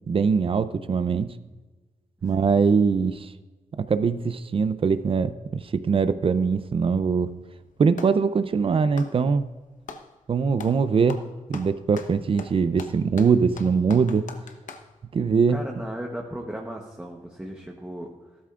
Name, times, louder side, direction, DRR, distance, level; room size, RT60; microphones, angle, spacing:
voice 1, 0.1-1.3 2.2-3.3 3.8-7.3 7.8-9.4 10.3-11.2 11.5-14.3 15.1-15.6, right 5 dB, 45° right, 12 dB, 0.5 m, -22 dB
voice 2, 2.2-2.6 15.5-18.1, right 1 dB, 10° right, -1 dB, 1.0 m, -36 dB
Clapping, 7.3-8.2 8.8-10.1 10.6-10.8 11.1-14.9, left 5 dB, 80° left, 0.9 m, -41 dB
14.5 x 13.0 x 2.5 m, 1.2 s
wide cardioid pair, 150°, 13 cm